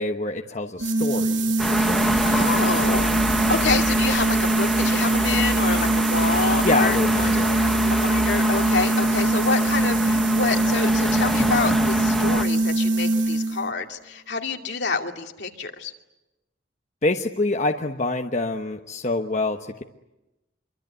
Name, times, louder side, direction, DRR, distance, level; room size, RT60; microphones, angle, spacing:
voice 1, 0.0-2.2 6.6-7.9 17.0-19.8, left 2 dB, 40° left, 3 dB, 1.1 m, -26 dB
sound 1, 0.8-13.7, right 2 dB, 80° right, 1.2 m, -22 dB
sound 2, 1.6-12.4, equal, ahead, 1.5 m, -26 dB
voice 2, 2.2-7.0 7.9-15.9, left 4 dB, 65° left, 2 dB, 2.5 m, -27 dB
25.5 x 24.5 x 9.2 m, 0.99 s
head